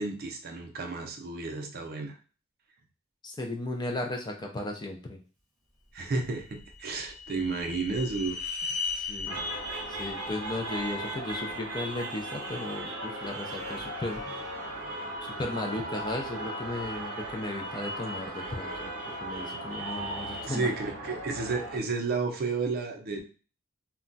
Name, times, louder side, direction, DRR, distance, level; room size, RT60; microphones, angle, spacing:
voice 1, 0.0-2.2 5.9-8.4 20.4-23.2, right 3 dB, 45° right, 4 dB, 0.5 m, -32 dB
voice 2, 3.2-5.2 9.0-9.4 10.0-14.2 15.2-18.9 19.2-20.7, left 2 dB, 20° left, 2 dB, 0.4 m, -35 dB
sound 1, 6.2-11.4, left 5 dB, ahead, 0.9 m, -38 dB
sound 2, 9.3-21.8, right 1 dB, 80° right, 0.8 m, -37 dB
2.2 x 2.1 x 3.9 m, 0.38 s
head